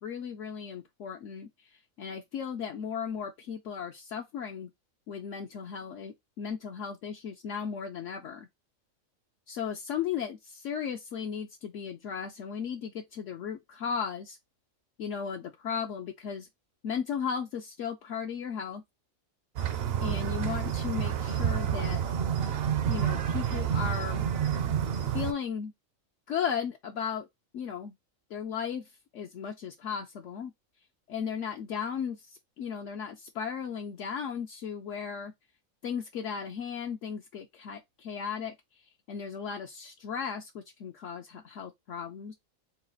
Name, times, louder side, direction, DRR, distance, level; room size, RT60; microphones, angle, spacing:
voice 1, 0.0-1.5 2.0-4.7 5.1-8.5 9.5-14.4 15.0-16.5 16.8-18.8 20.0-22.0 22.9-24.3 25.1-25.7 26.3-27.3 27.5-27.9 28.3-30.5 31.1-35.3 35.8-38.5 39.1-42.3, left 7 dB, 70° left, 0.9 m, -36 dB
sound 1, 19.6-25.3, right 9 dB, 60° right, 0.7 m, -29 dB
4.1 x 2.3 x 3.8 m
omnidirectional pair, 1.4 m